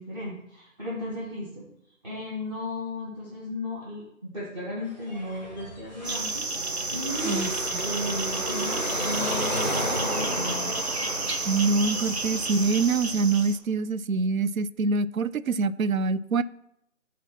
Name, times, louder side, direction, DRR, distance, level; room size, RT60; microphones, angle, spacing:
voice 1, 0.0-6.5 6.9-7.5 7.8-10.8, left 1 dB, 30° right, 1.5 m, -35 dB
sound 1, 4.8-11.0, equal, ahead, 1.2 m, -43 dB
sound 2, 6.0-13.6, right 3 dB, 55° right, 0.8 m, -31 dB
Car passing by / Traffic noise roadway noise, 6.3-13.3, equal, 35° left, 0.4 m, -33 dB
voice 2, 11.4-16.4, right 4 dB, 85° right, 0.5 m, -25 dB
8.2 x 3.1 x 5.9 m
figure-of-eight pair, 160°, 40 cm